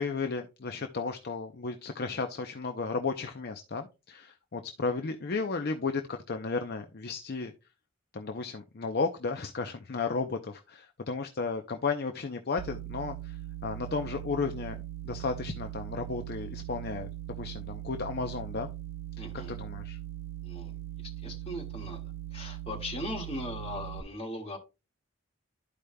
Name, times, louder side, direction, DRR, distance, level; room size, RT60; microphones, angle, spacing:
voice 1, 0.0-7.5 8.1-17.1 17.4-18.7 19.5-20.0, left 4 dB, 45° left, 0.6 m, -34 dB
sound 1, 12.6-24.0, right 14 dB, 80° right, 0.4 m, -40 dB
voice 2, 19.2-19.5 20.4-22.0 22.3-24.6, left 1 dB, 25° left, 1.9 m, -39 dB
12.5 x 5.0 x 2.2 m
head